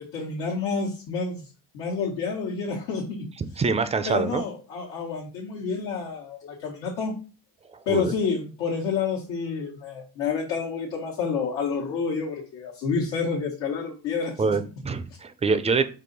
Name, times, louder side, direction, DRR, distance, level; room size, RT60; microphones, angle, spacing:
voice 1, 0.1-3.3 4.0-7.2 7.8-14.5, left 5 dB, 90° left, -6 dB, 1.3 m, -29 dB
voice 2, 3.6-4.4 7.7-8.1 14.4-15.9, right 4 dB, 15° right, 12 dB, 0.3 m, -25 dB
4.7 x 2.8 x 3.9 m, 0.35 s
cardioid pair, 110°, 43 cm